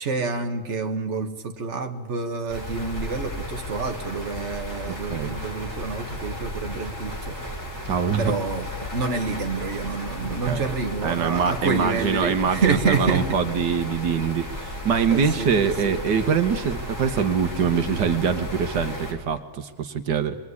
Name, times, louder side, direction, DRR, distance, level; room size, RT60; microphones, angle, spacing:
voice 1, 0.0-7.4 8.2-13.4 15.1-16.0, right 4 dB, 45° right, 4 dB, 1.8 m, -28 dB
sound 1, 2.5-19.1, left 1 dB, 10° left, 4.5 m, -34 dB
voice 2, 7.9-8.3 10.5-10.6 11.0-14.4 14.9-20.4, right 6 dB, 80° right, 8 dB, 1.7 m, -24 dB
25.0 x 22.0 x 9.7 m, 1.4 s
omnidirectional pair, 1.8 m